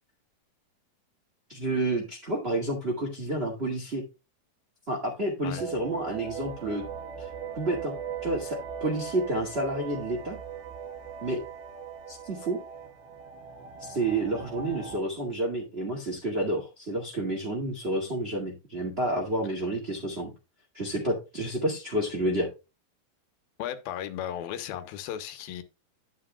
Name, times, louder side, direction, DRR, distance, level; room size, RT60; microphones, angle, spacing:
voice 1, 1.5-4.0 4.9-6.8 7.2-7.3 7.5-7.9 8.2-10.4 11.2-11.4 12.1-12.6 13.8-20.3 20.7-22.5, right 1 dB, 25° right, 1.5 m, -30 dB
sound 1, 5.6-15.0, right 7 dB, 85° right, 3.3 m, -39 dB
voice 2, 23.6-25.6, left 10 dB, 80° left, 2.8 m, -35 dB
10.0 x 9.9 x 2.3 m
omnidirectional pair, 4.2 m